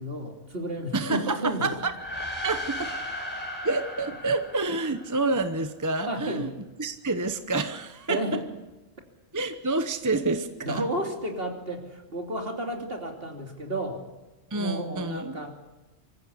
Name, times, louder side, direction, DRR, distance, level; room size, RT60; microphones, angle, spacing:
voice 1, 0.0-1.7 6.1-6.5 8.1-8.4 10.6-14.0 14.6-15.6, right 1 dB, 55° right, 2 dB, 3.2 m, -32 dB
voice 2, 0.9-1.9 2.4-2.9 3.6-6.5 6.8-8.2 9.3-10.8 14.5-15.4, right 3 dB, 20° right, 9 dB, 0.9 m, -28 dB
sound 1, 1.8-5.5, left 1 dB, 10° left, 4.4 m, -36 dB
25.0 x 15.0 x 8.4 m, 1.1 s
omnidirectional pair, 1.2 m